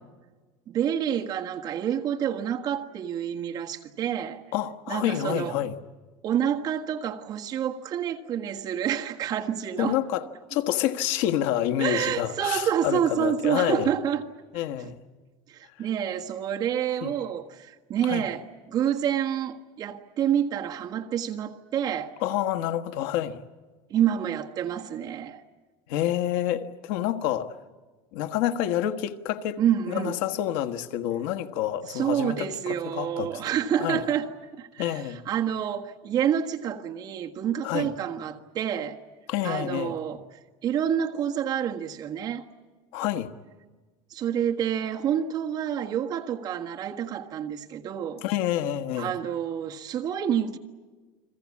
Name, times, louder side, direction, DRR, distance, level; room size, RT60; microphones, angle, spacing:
voice 1, 0.7-4.4 4.9-5.5 6.2-10.0 11.8-14.2 14.8-14.9 15.5-22.2 23.9-25.4 29.6-30.2 31.9-34.3 34.6-39.0 39.4-40.2 40.6-42.4 44.1-48.2 49.0-50.6, right 9 dB, 30° right, 1.5 m, -28 dB
voice 2, 4.5-5.8 9.8-13.9 14.5-15.0 15.8-15.9 17.0-17.1 18.0-18.2 22.2-23.4 25.9-27.5 28.1-29.6 29.9-33.4 33.8-34.0 34.8-35.2 37.6-37.9 39.3-39.9 42.9-43.3 48.2-49.1, left 12 dB, 65° left, 1.4 m, -28 dB
30.0 x 22.5 x 8.5 m
cardioid pair, 175°, 12 cm